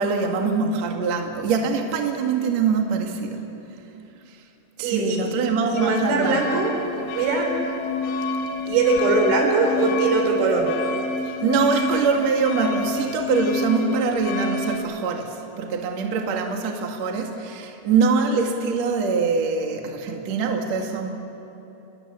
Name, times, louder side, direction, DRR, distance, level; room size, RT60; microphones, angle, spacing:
voice 1, 0.0-3.5 4.8-6.6 11.4-21.1, right 5 dB, 50° right, 2 dB, 2.4 m, -23 dB
voice 2, 4.8-5.2 5.7-6.7 7.1-7.5 8.7-10.7, right 4 dB, 80° right, 2 dB, 6.4 m, -21 dB
church bells, 5.8-14.8, left 3 dB, 70° left, 4.0 m, -28 dB
29.5 x 22.0 x 7.4 m, 3.0 s
omnidirectional pair, 5.4 m